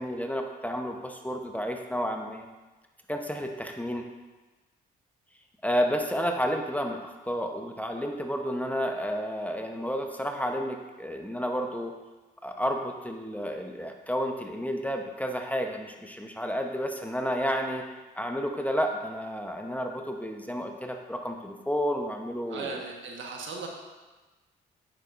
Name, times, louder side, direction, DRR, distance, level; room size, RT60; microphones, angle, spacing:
voice 1, 0.0-2.5 3.1-4.1 5.6-11.9 12.4-17.8 18.1-22.8, equal, 5° left, 3 dB, 0.9 m, -31 dB
voice 2, 22.5-23.7, right 4 dB, 65° right, 1 dB, 1.4 m, -37 dB
9.1 x 6.6 x 2.6 m, 1.2 s
supercardioid pair, 50°, 21 cm